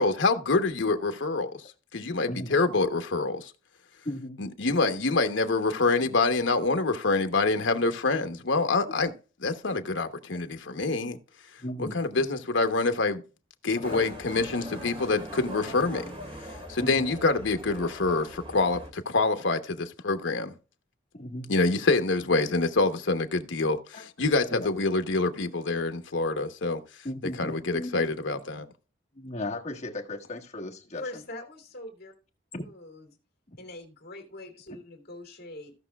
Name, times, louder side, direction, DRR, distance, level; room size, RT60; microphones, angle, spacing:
voice 1, 0.0-1.6 1.9-3.5 4.4-9.1 9.4-11.2 11.8-13.2 13.6-16.1 16.7-20.5 21.5-26.8 27.4-28.7, left 3 dB, 70° left, 1.0 m, -26 dB
voice 2, 2.2-2.6 4.0-4.4 8.9-9.0 11.6-12.0 13.7-14.0 16.8-17.1 21.1-21.5 23.9-24.0 24.5-24.7 27.0-28.0 29.1-31.2 32.5-32.6, left 1 dB, 35° left, 1.5 m, -36 dB
Motorcycle, 13.8-18.9, equal, 30° right, 2.3 m, -41 dB
voice 3, 30.9-32.1 32.6-33.1 33.6-35.7, left 1 dB, 55° left, 2.6 m, -43 dB
16.0 x 6.0 x 2.3 m
head